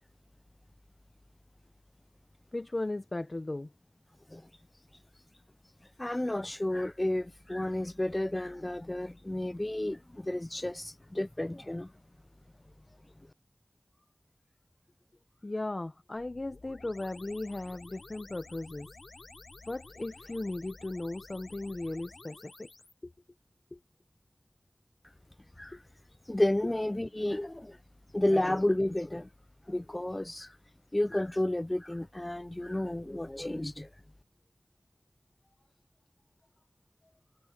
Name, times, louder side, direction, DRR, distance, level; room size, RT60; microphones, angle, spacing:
voice 1, 2.5-3.7 15.4-18.9 19.7-22.7 23.0-23.1 23.7-23.8 25.7-25.8, left 2 dB, 50° left, 1.0 m, -37 dB
voice 2, 6.0-11.9 25.6-25.8 26.3-27.8 28.1-29.3 29.7-30.5 30.9-33.9, left 1 dB, 25° left, 0.4 m, -31 dB
sound 1, 16.1-22.9, left 3 dB, 80° left, 5.0 m, -52 dB
wide cardioid pair, 55°, 0 cm